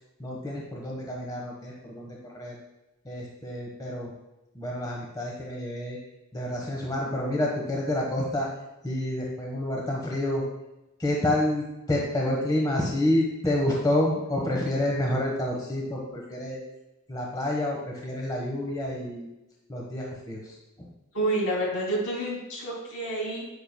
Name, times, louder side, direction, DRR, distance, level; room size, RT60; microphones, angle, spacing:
voice 1, 0.2-2.5 3.0-4.1 4.5-6.0 6.3-8.5 8.8-10.4 11.0-16.6 17.1-19.3 19.7-20.9, left 1 dB, 20° left, -2 dB, 1.1 m, -28 dB
voice 2, 21.1-23.4, right 1 dB, 65° left, -2 dB, 2.8 m, -28 dB
9.7 x 8.7 x 2.2 m, 0.96 s
head